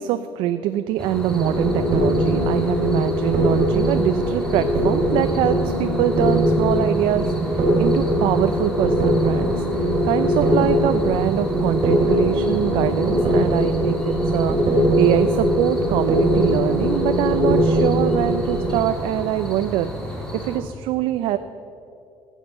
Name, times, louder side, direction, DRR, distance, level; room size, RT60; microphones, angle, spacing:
voice 1, 0.0-9.5 10.0-19.9 20.3-21.4, right 12 dB, 90° right, 10 dB, 0.5 m, -23 dB
sound 1, 1.0-20.6, equal, 10° left, 1.9 m, -32 dB
sound 2, 1.3-18.8, equal, 50° right, 2.8 m, -21 dB
15.0 x 7.4 x 6.8 m, 2.6 s
cardioid pair, 160°, 9 cm